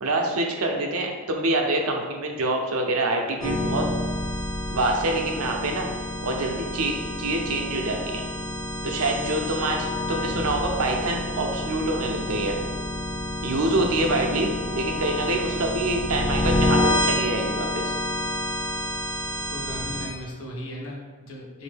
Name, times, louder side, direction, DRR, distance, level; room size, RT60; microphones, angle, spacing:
voice 1, 0.0-3.9 4.7-5.9 6.2-8.2 8.8-12.6 13.4-17.9, right 2 dB, 80° right, 2 dB, 0.6 m, -26 dB
sound 1, 3.4-20.1, left 1 dB, 15° left, 0.4 m, -28 dB
voice 2, 19.5-21.6, left 1 dB, 70° left, -2 dB, 0.9 m, -36 dB
4.1 x 2.6 x 3.4 m, 1.4 s
head